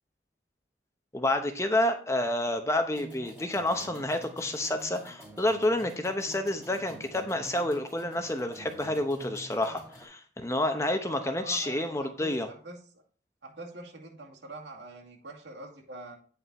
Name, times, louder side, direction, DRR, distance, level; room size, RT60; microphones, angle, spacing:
voice 1, 1.1-12.5, left 1 dB, 15° left, 7 dB, 0.8 m, -29 dB
sound 1, 2.9-10.0, right 1 dB, 10° right, 2.6 m, -48 dB
voice 2, 11.1-13.0 13.4-16.2, right 2 dB, 85° right, -1 dB, 2.3 m, -45 dB
9.3 x 5.7 x 4.2 m, 0.42 s
head